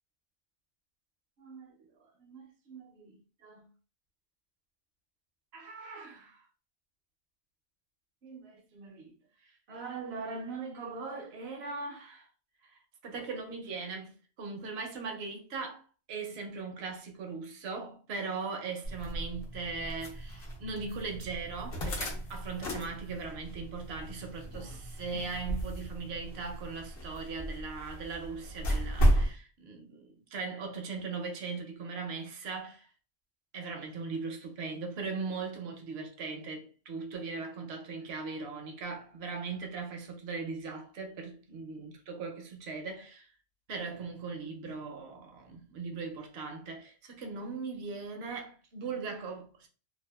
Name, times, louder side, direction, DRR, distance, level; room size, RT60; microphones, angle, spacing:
voice 1, 1.4-1.9 2.2-3.7 5.5-6.5 8.2-9.1 9.4-12.3 12.6-32.9 33.5-43.3 43.7-49.7, right 4 dB, 75° right, 0.9 m, -39 dB
sound 1, 18.8-29.3, right 1 dB, 65° left, 0.9 m, -34 dB
2.6 x 2.3 x 2.2 m
omnidirectional pair, 1.1 m